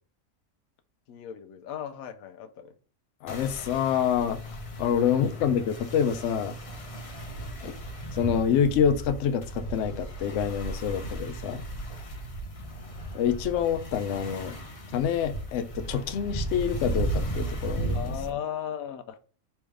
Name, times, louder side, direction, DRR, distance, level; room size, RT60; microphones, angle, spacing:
voice 1, 1.1-2.7 7.6-7.8 17.9-19.2, left 9 dB, 90° left, 1.1 m, -36 dB
voice 2, 3.2-4.4 4.8-6.6 8.2-11.6 13.1-14.5 14.9-18.1, left 8 dB, 70° left, 0.8 m, -27 dB
sound 1, 3.3-18.3, right 1 dB, 35° left, 0.5 m, -35 dB
3.4 x 3.1 x 4.8 m
omnidirectional pair, 1.4 m